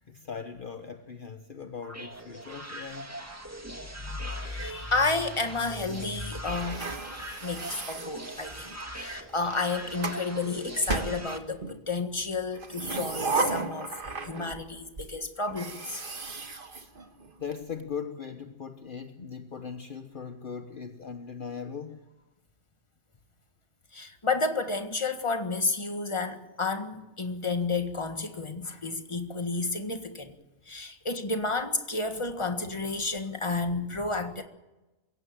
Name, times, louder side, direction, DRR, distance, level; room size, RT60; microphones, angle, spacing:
voice 1, 0.1-3.1 16.6-17.0 17.4-22.1, left 6 dB, 50° left, 1.2 m, -39 dB
sound 1, 1.8-11.4, right 1 dB, 15° right, 1.9 m, -41 dB
voice 2, 4.0-6.8 7.4-13.9 14.2-16.0 23.9-30.3 30.7-34.4, left 3 dB, 25° left, 1.7 m, -31 dB
sound 2, 6.5-8.8 9.6-10.2 10.9-11.8 12.5-14.7 15.0-15.1 15.5-17.5, right 3 dB, 50° right, 1.7 m, -34 dB
22.5 x 17.0 x 9.0 m
omnidirectional pair, 1.2 m